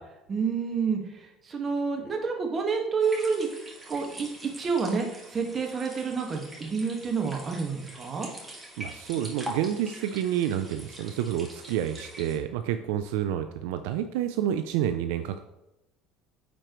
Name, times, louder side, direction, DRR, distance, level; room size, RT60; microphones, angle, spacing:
voice 1, 0.3-1.0 1.5-3.5 3.9-8.3, right 5 dB, 35° right, 2 dB, 1.5 m, -29 dB
sound 1, 3.0-12.4, right 1 dB, 15° right, 1.8 m, -44 dB
voice 2, 8.8-15.4, right 10 dB, 80° right, 9 dB, 0.4 m, -29 dB
9.2 x 4.4 x 3.1 m, 0.90 s
supercardioid pair, 90°, 0 cm